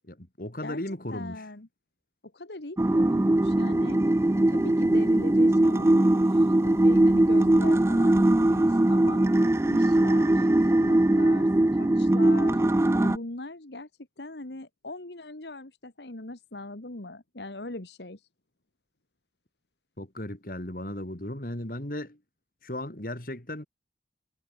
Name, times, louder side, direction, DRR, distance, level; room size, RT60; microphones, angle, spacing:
voice 1, 0.1-1.4 20.0-22.2 22.6-23.7, left 1 dB, 50° left, 3.2 m, -36 dB
voice 2, 1.1-1.7 2.3-4.0 4.5-9.3 9.7-12.6 13.0-13.9 14.2-18.3, left 2 dB, 75° left, 1.9 m, -40 dB
sound 1, 2.8-13.2, right 1 dB, 15° right, 0.4 m, -21 dB
head